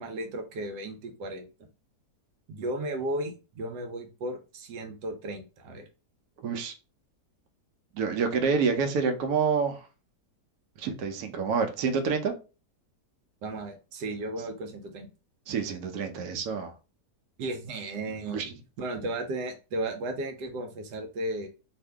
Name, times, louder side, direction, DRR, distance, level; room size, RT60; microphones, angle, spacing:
voice 1, 0.0-1.5 2.5-5.9 13.4-15.1 17.4-18.5 18.8-21.5, right 1 dB, 85° right, 1.3 m, -35 dB
voice 2, 6.4-6.7 7.9-9.8 10.8-12.3 15.5-16.7 18.3-18.5, right 5 dB, 70° right, 1.1 m, -27 dB
2.8 x 2.5 x 3.3 m
omnidirectional pair, 1.8 m